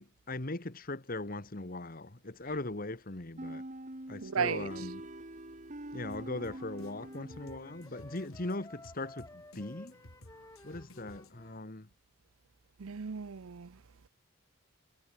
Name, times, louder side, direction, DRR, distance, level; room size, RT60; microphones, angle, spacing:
voice 1, 0.0-3.6 4.1-5.0 5.9-9.9 10.6-11.9, left 2 dB, 40° left, 1.5 m, -39 dB
sound 1, 3.4-8.0, right 1 dB, 35° right, 2.0 m, -44 dB
voice 2, 4.2-4.7 12.8-13.8, right 6 dB, 80° right, 0.6 m, -34 dB
Drum kit, 6.1-11.6, left 1 dB, 80° left, 4.2 m, -56 dB
Wind instrument woodwind instrument, 6.3-11.7, left 1 dB, 15° left, 3.9 m, -54 dB
head